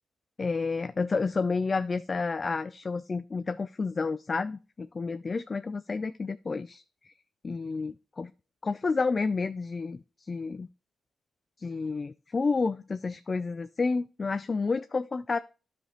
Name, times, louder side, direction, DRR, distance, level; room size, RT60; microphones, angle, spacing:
voice 1, 0.4-6.8 7.4-8.3 8.6-10.7 11.6-15.4, left 4 dB, 40° left, 12 dB, 0.3 m, -30 dB
10.0 x 5.1 x 3.0 m, 0.34 s
cardioid pair, 65°, 0 cm